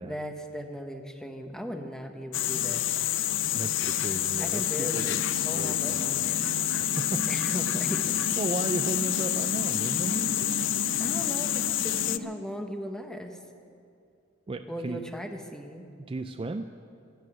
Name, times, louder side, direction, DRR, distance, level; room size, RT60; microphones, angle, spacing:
voice 1, 0.0-2.9 4.4-6.5 7.3-8.4 11.0-13.4 14.7-15.8, equal, 5° left, 5 dB, 1.0 m, -37 dB
sound 1, 2.3-12.2, left 13 dB, 65° left, 0.4 m, -28 dB
voice 2, 3.5-6.3 6.8-7.4 8.4-10.5 14.5-15.0 16.1-16.7, right 2 dB, 25° right, 7 dB, 0.4 m, -35 dB
sound 2, 5.0-12.3, right 1 dB, 85° right, 0.9 m, -38 dB
13.0 x 12.5 x 8.8 m, 2.5 s
head